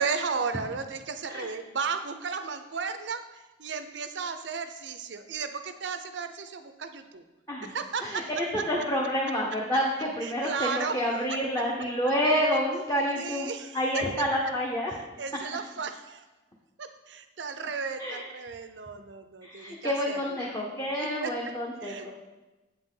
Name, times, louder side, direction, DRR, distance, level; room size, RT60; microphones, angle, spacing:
voice 1, 0.0-7.2 7.6-8.3 10.2-11.4 13.2-14.0 15.2-16.2 16.8-20.3 21.0-21.3 21.8-22.1, right 5 dB, 75° right, 9 dB, 0.6 m, -34 dB
voice 2, 8.0-14.9 18.0-18.3 19.4-22.1, equal, 15° left, -3 dB, 0.9 m, -28 dB
8.0 x 7.8 x 3.8 m, 1.1 s
head